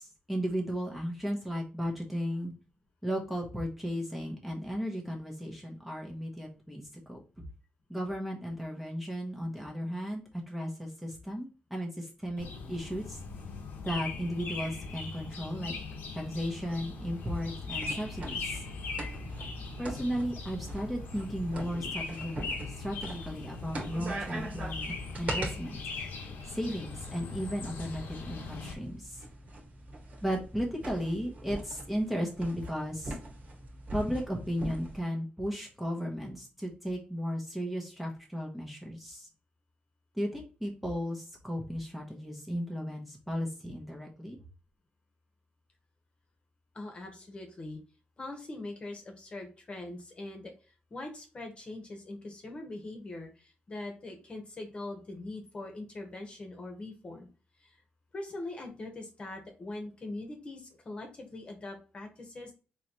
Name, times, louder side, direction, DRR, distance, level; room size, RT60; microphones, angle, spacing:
voice 1, 0.0-2.5 3.0-6.8 7.1-7.2 7.9-13.2 13.8-15.7 16.1-18.6 19.8-22.5 22.8-25.8 26.5-29.2 30.2-33.2 33.9-39.3 40.1-44.4, equal, 5° right, -1 dB, 0.9 m, -35 dB
sound 1, 12.4-28.7, left 4 dB, 80° left, 1.0 m, -40 dB
sound 2, 16.9-25.5 26.8-35.0, right 2 dB, 45° right, 1.4 m, -42 dB
voice 2, 46.7-47.8 48.2-50.5 50.9-57.3 57.6-57.8 58.1-62.5, left 2 dB, 35° left, 3 dB, 1.1 m, -42 dB
4.0 x 3.1 x 3.0 m, 0.35 s
cardioid pair, 125°, 3 cm